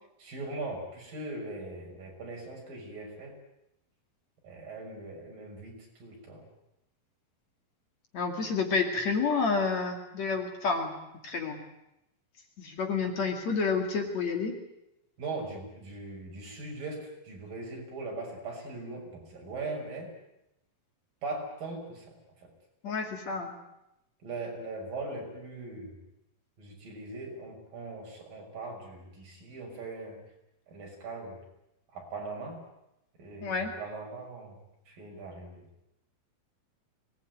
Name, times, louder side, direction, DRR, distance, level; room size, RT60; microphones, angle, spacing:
voice 1, 0.2-3.3 4.4-6.4 15.2-20.1 21.2-22.0 24.2-26.0 26.6-30.2 30.7-31.4 31.9-32.6 33.2-34.6 34.9-35.6, right 3 dB, 65° right, 0 dB, 8.0 m, -40 dB
voice 2, 8.1-10.9 11.2-11.6 12.6-14.6 22.8-23.5 33.4-33.7, left 4 dB, 50° left, 4 dB, 3.5 m, -29 dB
24.5 x 20.0 x 9.5 m, 0.86 s
omnidirectional pair, 4.2 m